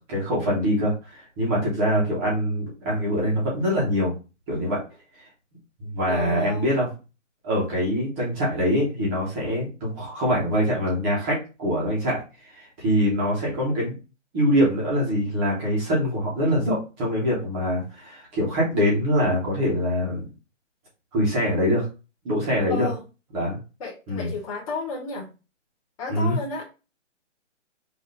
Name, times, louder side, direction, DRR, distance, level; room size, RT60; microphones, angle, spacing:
voice 1, 0.0-4.1 4.5-4.8 5.8-6.9 7.4-12.2 12.5-13.9 14.3-20.2 21.1-21.8 22.2-22.9 23.3-23.6 24.1-24.3 26.1-26.4, equal, 10° right, -5 dB, 0.9 m, -24 dB
voice 2, 6.1-6.7 22.7-23.0 23.8-25.3 26.0-26.7, left 3 dB, 25° left, -3 dB, 1.2 m, -32 dB
5.3 x 2.5 x 3.8 m, 0.30 s
hypercardioid pair, 170°, 38 cm